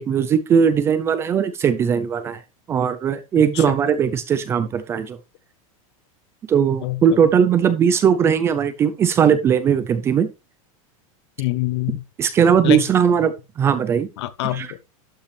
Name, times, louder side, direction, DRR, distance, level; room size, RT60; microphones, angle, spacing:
voice 1, 0.0-2.4 2.7-5.2 6.5-10.3 12.2-14.1 14.5-14.7, right 7 dB, 15° right, 0.5 m, -19 dB
voice 2, 6.8-7.2 11.4-12.0 12.6-12.8 14.2-14.8, left 16 dB, 50° left, 0.9 m, -25 dB
12.0 x 5.3 x 3.3 m
supercardioid pair, 175°, 18 cm